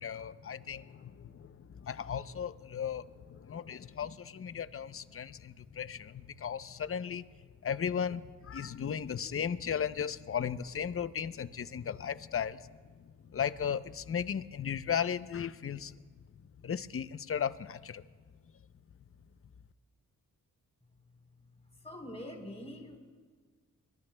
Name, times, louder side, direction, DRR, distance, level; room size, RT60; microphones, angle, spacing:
voice 1, 0.0-7.2 7.6-12.7 13.3-15.9 16.6-18.0, left 8 dB, 40° left, 0.6 m, -36 dB
voice 2, 21.8-23.0, left 1 dB, 20° left, 3.6 m, -44 dB
24.0 x 21.0 x 2.2 m
cardioid pair, 60°, 33 cm